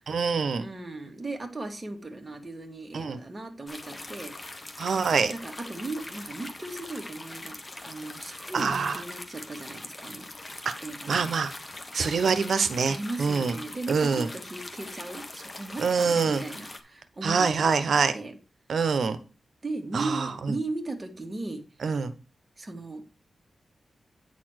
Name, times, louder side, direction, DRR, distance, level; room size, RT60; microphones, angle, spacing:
voice 1, 0.1-0.6 2.9-3.2 4.8-5.3 8.5-9.0 10.6-10.7 11.1-11.5 11.9-13.6 13.9-14.3 15.8-16.4 17.2-18.1 18.7-19.2 19.9-20.5 21.8-22.1, right 5 dB, 70° right, 12 dB, 0.9 m, -25 dB
voice 2, 0.6-4.6 5.3-7.6 7.8-10.3 10.8-11.3 12.9-17.7 17.9-18.4 19.6-21.6 22.6-23.0, right 2 dB, 25° right, 3 dB, 2.0 m, -37 dB
sound 1, 3.7-16.8, left 2 dB, 25° left, 1.3 m, -42 dB
9.3 x 4.2 x 6.4 m, 0.32 s
wide cardioid pair, 95°, 0 cm